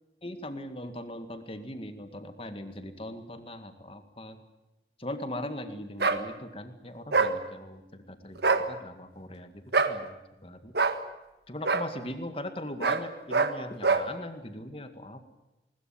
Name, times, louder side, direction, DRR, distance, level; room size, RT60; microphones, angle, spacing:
voice 1, 0.2-4.4 5.0-9.5 9.9-10.7 11.5-15.3, left 1 dB, 30° left, 8 dB, 2.1 m, -40 dB
sound 1, 6.0-6.2 7.1-7.3 8.4-8.7 9.7-10.0 10.7-11.0 11.6-11.9 12.8-13.0 13.3-13.5 13.8-14.1, right 4 dB, 70° right, 1.6 m, -24 dB
21.0 x 20.0 x 9.2 m, 1.0 s
head